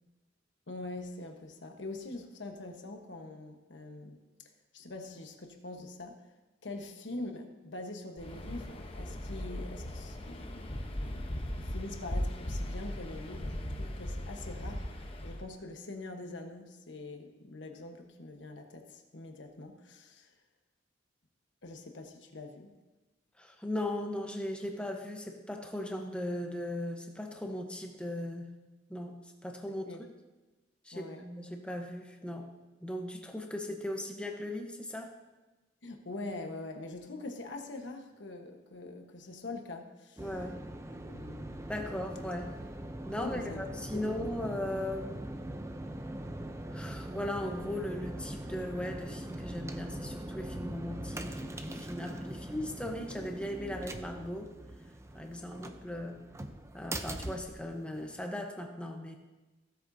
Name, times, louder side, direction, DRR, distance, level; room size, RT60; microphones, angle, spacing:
voice 1, 0.7-4.2 4.7-6.2 6.6-14.9 15.2-20.3 21.6-22.7 29.7-30.0 30.9-31.3 35.8-40.3 41.0-41.5 43.1-43.6 43.9-44.4, left 2 dB, 80° left, 4 dB, 1.2 m, -44 dB
Waves surf, 8.2-15.5, equal, 30° left, 0.9 m, -38 dB
voice 2, 23.4-28.5 28.9-29.9 30.8-32.5 32.8-35.1 40.2-40.6 41.7-42.5 43.1-45.3 46.7-54.5 55.1-56.2 56.7-59.1, left 1 dB, 5° left, 3 dB, 0.9 m, -38 dB
sound 1, 40.2-58.2, right 1 dB, 15° right, 0.5 m, -42 dB
16.0 x 8.0 x 2.7 m, 1.2 s
head